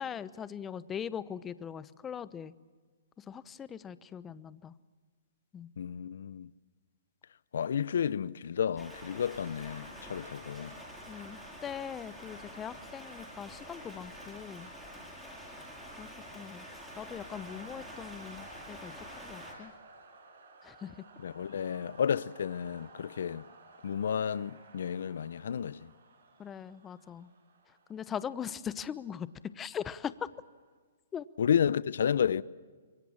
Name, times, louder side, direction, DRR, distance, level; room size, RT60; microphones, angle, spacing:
voice 1, 0.0-2.5 3.2-4.7 5.5-5.7 11.1-14.7 16.0-16.6 17.0-19.7 20.6-21.0 26.4-27.3 27.9-29.3 29.5-30.3 31.1-31.2, left 8 dB, 15° left, 0.9 m, -41 dB
voice 2, 5.8-6.5 7.5-10.7 21.2-23.4 23.8-25.9 31.4-32.4, left 8 dB, 70° left, 0.7 m, -31 dB
Rain, 8.8-19.5, equal, 5° right, 7.6 m, -47 dB
sound 1, 16.9-30.7, right 3 dB, 70° right, 5.6 m, -56 dB
27.0 x 23.0 x 7.2 m
hypercardioid pair, 140°, 0 cm